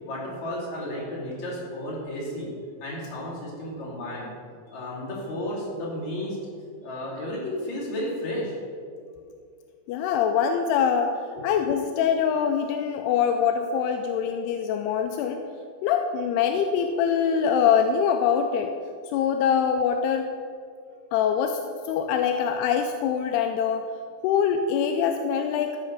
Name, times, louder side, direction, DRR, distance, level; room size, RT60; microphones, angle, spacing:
voice 1, 0.0-2.5 2.8-4.3 4.7-6.4 6.8-8.5 11.4-11.5, left 1 dB, 45° left, -6 dB, 4.1 m, -33 dB
voice 2, 9.9-15.4 15.8-18.7 19.1-20.3 21.1-23.9 24.2-25.8, left 7 dB, 85° left, 5 dB, 2.6 m, -24 dB
13.5 x 5.7 x 6.7 m, 2.3 s
omnidirectional pair, 4.6 m